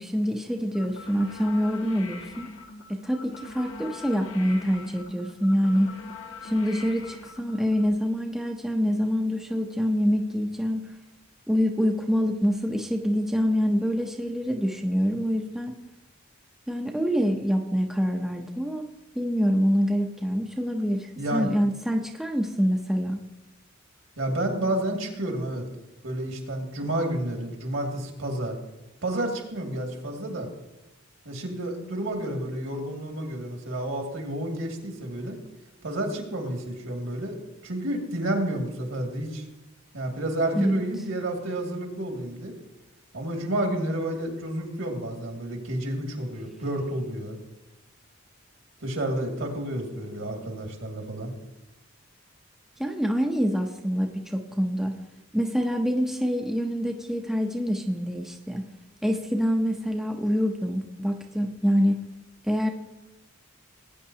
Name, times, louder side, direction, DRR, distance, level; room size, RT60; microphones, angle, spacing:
voice 1, 0.0-2.5 2.9-5.9 6.4-10.9 11.5-15.8 16.7-18.9 19.2-23.2 40.6-40.8 52.8-54.9 55.3-58.6 59.0-62.0 62.5-62.7, equal, ahead, 2 dB, 0.6 m, -26 dB
sound 1, 0.7-7.9, left 3 dB, 70° left, 1.4 m, -43 dB
voice 2, 21.2-21.5 24.2-25.7 26.0-28.6 29.0-30.5 31.2-35.4 35.8-37.4 37.6-39.4 39.9-42.5 43.1-47.4 48.8-51.3, right 1 dB, 70° right, 2 dB, 2.2 m, -30 dB
18.5 x 9.3 x 2.8 m, 0.97 s
head